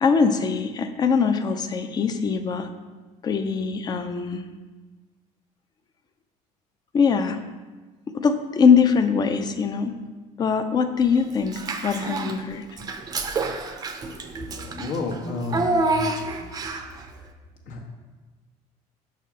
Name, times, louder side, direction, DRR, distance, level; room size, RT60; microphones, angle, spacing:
voice 1, 0.0-2.7 3.2-4.4 6.9-7.4 8.1-9.9 10.4-11.5 11.8-12.6, left 5 dB, 30° left, 8 dB, 0.5 m, -22 dB
Child speech kid speaking / Bathtub (filling or washing), 11.5-12.4 12.8-17.0, right 2 dB, 25° right, 0.5 m, -28 dB
voice 2, 14.3-16.1 17.7-17.8, left 3 dB, 70° left, 1 dB, 1.2 m, -31 dB
6.0 x 4.2 x 6.1 m, 1.3 s
cardioid pair, 150°, 14 cm